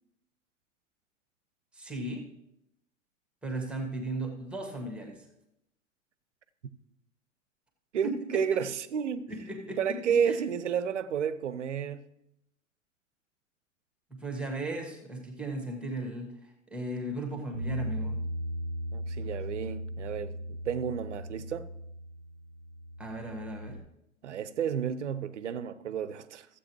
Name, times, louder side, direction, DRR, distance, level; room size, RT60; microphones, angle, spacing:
voice 1, 1.7-2.2 3.4-5.2 8.0-8.4 9.3-10.0 10.2-10.4 14.1-16.3 16.7-18.2 23.0-23.8, right 2 dB, 5° right, 1.7 m, -36 dB
voice 2, 7.9-9.3 9.8-12.0 18.9-21.7 24.2-26.5, right 7 dB, 70° right, 0.7 m, -31 dB
Bass guitar, 17.5-23.8, equal, 70° left, 3.8 m, -37 dB
14.5 x 8.2 x 3.1 m
figure-of-eight pair, 95°, 38 cm